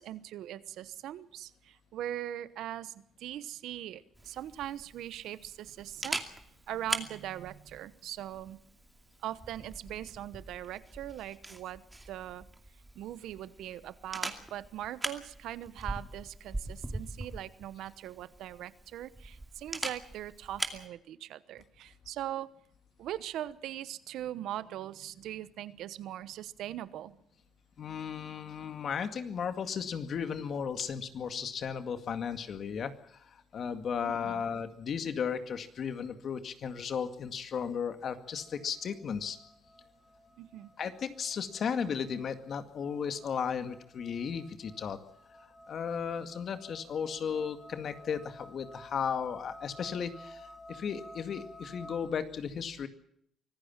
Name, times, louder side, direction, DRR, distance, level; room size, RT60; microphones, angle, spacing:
voice 1, 0.0-6.2 6.7-8.6 9.2-12.5 12.9-22.6 23.0-27.1 34.0-34.4 40.4-40.7, right 12 dB, 85° right, 16 dB, 1.0 m, -41 dB
Camera, 4.2-20.9, right 2 dB, 15° right, 2.5 m, -42 dB
voice 2, 27.8-39.4 40.8-45.0 45.7-52.9, left 7 dB, 60° left, 9 dB, 2.1 m, -35 dB
sound 1, 38.2-52.1, left 1 dB, 10° left, 4.1 m, -54 dB
24.5 x 15.5 x 7.3 m, 0.69 s
cardioid pair, 90°, 0 cm